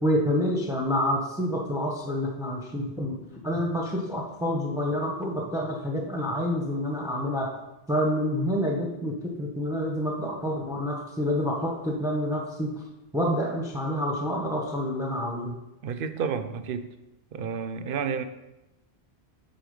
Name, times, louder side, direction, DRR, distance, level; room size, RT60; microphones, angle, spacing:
voice 1, 0.0-3.1 3.4-7.5 7.9-12.8 13.1-15.5, equal, 5° right, 0 dB, 0.7 m, -28 dB
voice 2, 15.8-16.9 17.3-18.2, right 6 dB, 65° right, 10 dB, 0.7 m, -30 dB
7.7 x 4.4 x 5.2 m, 0.97 s
omnidirectional pair, 1.1 m